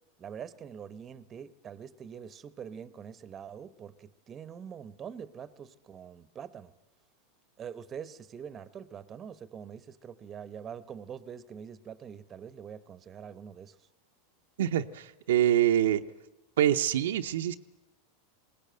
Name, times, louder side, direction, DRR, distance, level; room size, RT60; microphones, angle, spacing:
voice 1, 0.2-6.7 7.6-13.8, right 7 dB, 30° right, 0.9 m, -44 dB
voice 2, 14.6-16.1 16.6-17.6, right 11 dB, 80° right, 0.7 m, -25 dB
21.5 x 18.5 x 7.8 m
hypercardioid pair, 110°, 0 cm